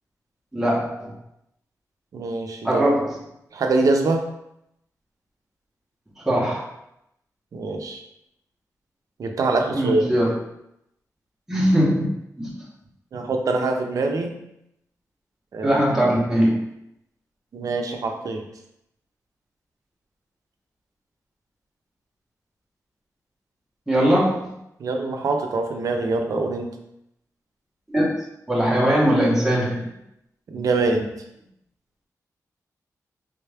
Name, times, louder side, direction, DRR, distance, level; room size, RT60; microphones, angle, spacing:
voice 1, 0.5-1.1 2.6-3.2 6.2-6.7 9.7-10.4 11.5-12.1 12.4-12.5 15.6-16.6 23.9-24.5 27.9-28.1 28.5-29.9, equal, 5° right, -6 dB, 0.8 m, -20 dB
voice 2, 2.1-2.8 3.5-4.3 7.5-8.0 9.2-10.1 13.1-14.4 15.5-15.8 17.5-18.4 24.8-26.7 30.5-31.1, right 3 dB, 65° right, 3 dB, 0.5 m, -24 dB
3.5 x 2.2 x 3.3 m, 0.81 s
wide cardioid pair, 105°, 6 cm